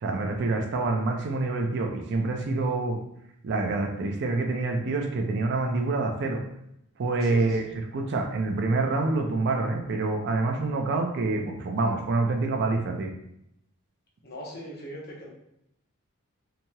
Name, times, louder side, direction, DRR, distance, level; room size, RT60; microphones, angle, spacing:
voice 1, 0.0-3.0 3.4-6.4 7.0-7.6 7.9-13.1, right 3 dB, 55° right, 3 dB, 0.4 m, -26 dB
voice 2, 7.2-7.7 14.2-15.3, equal, 45° left, -3 dB, 0.8 m, -40 dB
2.8 x 2.8 x 2.2 m, 0.79 s
head